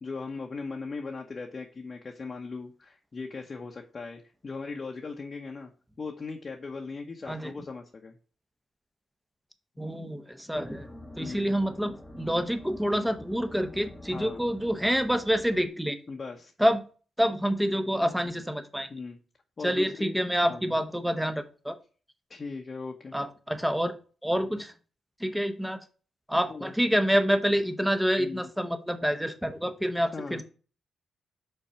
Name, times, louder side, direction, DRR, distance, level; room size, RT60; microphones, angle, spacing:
voice 1, 0.0-5.7 6.0-8.2 11.2-11.5 14.1-14.4 16.1-16.5 18.9-19.2 19.6-20.2 20.5-20.7 22.3-23.2 26.5-26.7 28.2-28.4 30.1-30.4, left 4 dB, 40° left, 1 dB, 0.9 m, -38 dB
voice 2, 9.8-10.9 11.2-16.0 16.6-16.8 17.2-18.9 19.6-21.8 23.1-24.0 24.2-24.7 25.2-25.8 26.3-30.4, equal, 5° right, 9 dB, 0.9 m, -27 dB
sound 1, 10.5-15.7, left 1 dB, 15° left, 1.4 m, -45 dB
5.5 x 4.0 x 5.6 m, 0.38 s
cardioid pair, 70°, 0 cm